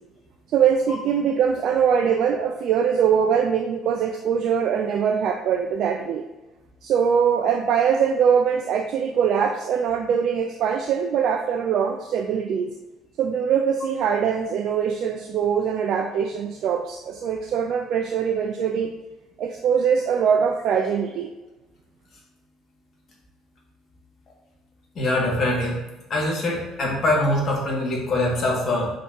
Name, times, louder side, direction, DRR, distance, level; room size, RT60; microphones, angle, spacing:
voice 1, 0.5-6.3 6.8-12.7 13.2-18.9 19.4-21.3, right 7 dB, 55° right, 4 dB, 0.5 m, -22 dB
voice 2, 25.0-25.8 26.1-28.9, left 1 dB, 45° left, -2 dB, 2.1 m, -23 dB
7.2 x 6.1 x 2.9 m, 1.1 s
figure-of-eight pair, 55°, 0 cm